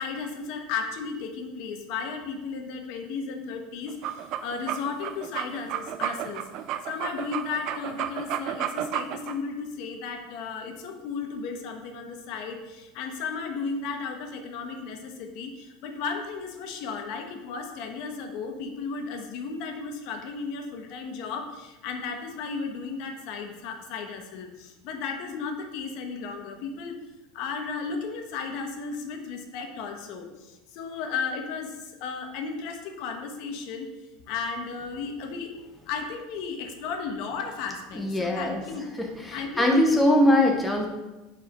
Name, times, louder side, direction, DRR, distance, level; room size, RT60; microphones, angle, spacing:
voice 1, 0.0-6.5 6.8-27.0 27.3-33.9 34.3-35.5 35.9-38.9 39.3-40.0, left 5 dB, 55° left, 4 dB, 1.2 m, -34 dB
sound 1, 3.9-9.3, right 11 dB, 45° right, 0.5 m, -32 dB
voice 2, 37.9-38.6 39.0-40.9, left 1 dB, 5° left, 0 dB, 0.9 m, -22 dB
7.4 x 5.0 x 5.1 m, 1.1 s
supercardioid pair, 150°, 0 cm